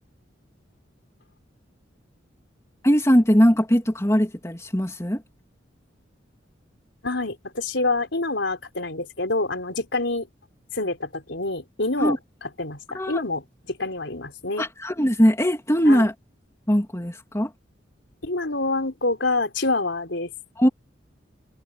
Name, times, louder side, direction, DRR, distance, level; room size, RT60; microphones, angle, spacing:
voice 1, 2.8-5.2 12.0-12.2 12.9-13.2 14.6-16.1 16.7-17.5 20.6-20.7, equal, 15° left, 2.9 m, -20 dB
voice 2, 7.0-10.3 10.7-12.2 12.6-14.7 15.8-16.1 18.2-20.3, left 2 dB, 70° left, 5.0 m, -27 dB
head